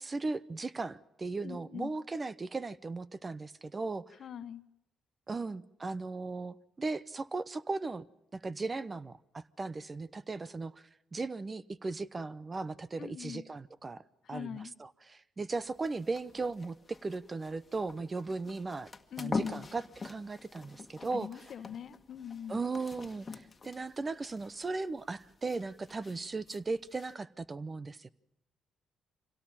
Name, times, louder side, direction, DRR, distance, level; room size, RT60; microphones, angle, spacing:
voice 1, 0.0-4.1 5.3-8.0 8.3-10.8 11.1-14.0 14.3-18.9 19.2-21.4 22.5-28.1, right 3 dB, 30° right, 17 dB, 0.8 m, -37 dB
voice 2, 1.4-1.9 4.2-4.6 13.0-13.4 14.2-14.7 19.1-19.6 21.1-22.6, left 8 dB, 60° left, 12 dB, 1.2 m, -42 dB
sound 1, 15.5-27.1, left 4 dB, 30° left, 1.7 m, -45 dB
25.5 x 17.5 x 8.8 m, 0.87 s
cardioid pair, 90°, 0 cm